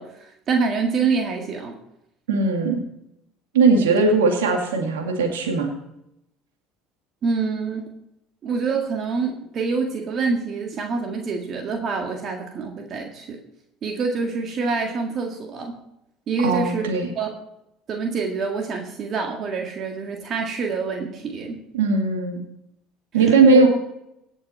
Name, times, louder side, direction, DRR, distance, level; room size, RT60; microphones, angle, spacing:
voice 1, 0.0-1.8 7.2-7.9 8.4-13.4 13.8-15.8 16.3-16.9 17.1-17.3 17.9-21.6 23.4-23.6, right 4 dB, 45° right, 2 dB, 1.8 m, -26 dB
voice 2, 2.3-2.8 3.5-5.7 16.4-17.1 21.7-22.4 23.1-23.7, right 4 dB, 90° right, 3 dB, 2.2 m, -18 dB
18.0 x 6.4 x 4.3 m, 0.82 s
hypercardioid pair, 80°, 0 cm